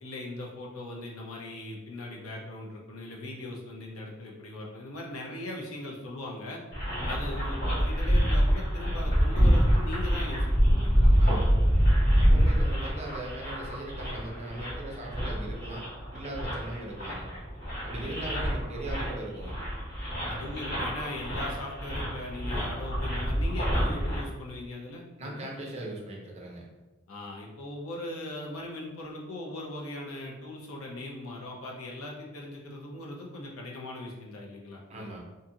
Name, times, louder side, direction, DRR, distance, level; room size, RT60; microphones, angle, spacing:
voice 1, 0.0-6.6 7.0-11.7 12.3-12.5 17.9-18.2 20.3-25.5 27.1-35.1, left 2 dB, 80° left, -2 dB, 0.6 m, -40 dB
sound 1, 6.7-24.2, equal, 50° left, 1.5 m, -26 dB
voice 2, 11.2-11.6 12.2-15.8 16.1-17.3 17.8-19.6 20.2-20.3 25.2-26.7 34.9-35.2, right 1 dB, 30° right, -1 dB, 0.5 m, -39 dB
2.6 x 2.4 x 2.7 m, 1.1 s
head